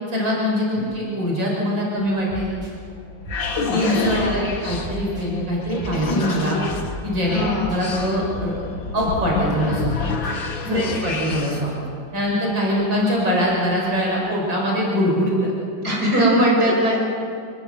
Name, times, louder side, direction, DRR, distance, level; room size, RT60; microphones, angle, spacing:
voice 1, 0.1-2.6 3.7-6.6 7.0-8.7 8.9-9.9 10.6-11.7 12.1-15.5 16.9-17.0, equal, 85° right, -3 dB, 7.0 m, -23 dB
sound 1, 2.0-10.9, left 1 dB, 30° right, 6.9 m, -36 dB
sound 2, 2.9-11.7, left 3 dB, 85° left, 2.4 m, -29 dB
voice 2, 4.0-4.5 7.3-7.7 10.6-11.1 15.8-17.0, equal, 55° right, -3 dB, 7.3 m, -21 dB
26.5 x 20.0 x 8.1 m, 2.2 s
omnidirectional pair, 2.0 m